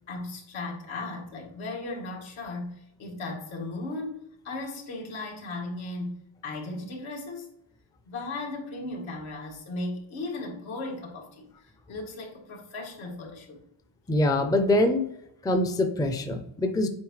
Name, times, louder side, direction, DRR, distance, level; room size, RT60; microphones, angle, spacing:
voice 1, 0.1-7.5 8.1-13.6, left 2 dB, 75° left, 0 dB, 2.2 m, -36 dB
voice 2, 14.1-15.1 15.4-16.9, left 1 dB, 10° left, 7 dB, 0.5 m, -24 dB
8.3 x 4.8 x 3.2 m, 0.81 s
cardioid pair, 120°, 47 cm